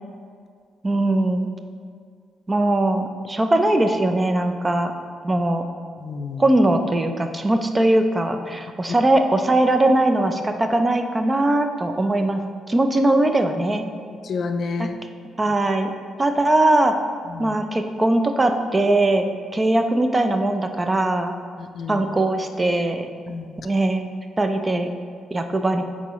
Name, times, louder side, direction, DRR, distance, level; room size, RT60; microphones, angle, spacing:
voice 1, 0.8-1.5 2.5-4.9 5.2-5.6 6.4-12.4 12.7-13.9 14.8-14.9 15.4-15.9 16.2-16.9 17.4-19.3 19.5-21.3 21.9-23.1 23.6-24.1 24.4-24.9 25.3-25.8, right 1 dB, 20° right, 6 dB, 0.5 m, -20 dB
voice 2, 6.0-6.4 14.2-15.0 17.3-17.6 21.6-22.0 23.3-23.6, left 4 dB, 55° left, 7 dB, 0.4 m, -30 dB
8.3 x 4.2 x 3.1 m, 2.1 s
cardioid pair, 90°, 0 cm